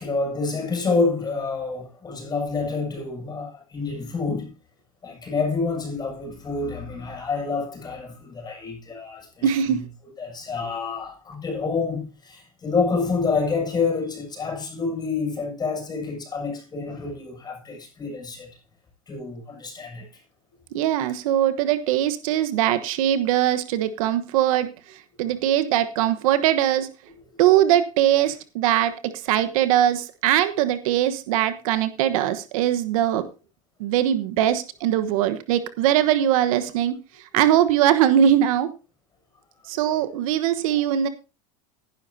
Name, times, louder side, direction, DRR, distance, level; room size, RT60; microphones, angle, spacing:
voice 1, 0.0-4.5 5.0-9.8 10.2-18.5 19.1-20.1 39.9-40.0, left 4 dB, 20° left, 7.1 m, -28 dB
voice 2, 9.4-9.8 20.7-24.7 25.2-26.9 27.4-33.3 33.8-37.0 37.3-38.7 39.7-41.1, right 11 dB, 75° right, 1.2 m, -21 dB
15.5 x 11.5 x 2.8 m
supercardioid pair, 115°, 18 cm